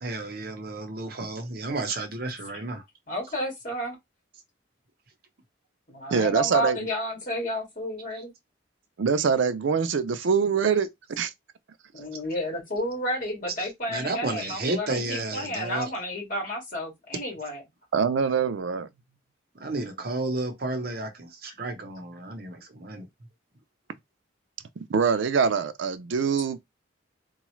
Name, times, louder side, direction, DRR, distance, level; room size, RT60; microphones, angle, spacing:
voice 1, 0.0-2.8 13.6-15.9 17.2-17.3 19.5-23.1, right 2 dB, 50° right, 0.8 m, -32 dB
voice 2, 3.1-4.0 5.9-8.3 11.9-17.6, equal, 45° left, 2.0 m, -31 dB
voice 3, 6.1-6.8 9.0-11.3 17.9-18.9 24.9-26.6, right 6 dB, 80° right, 0.4 m, -24 dB
3.9 x 2.3 x 3.1 m
head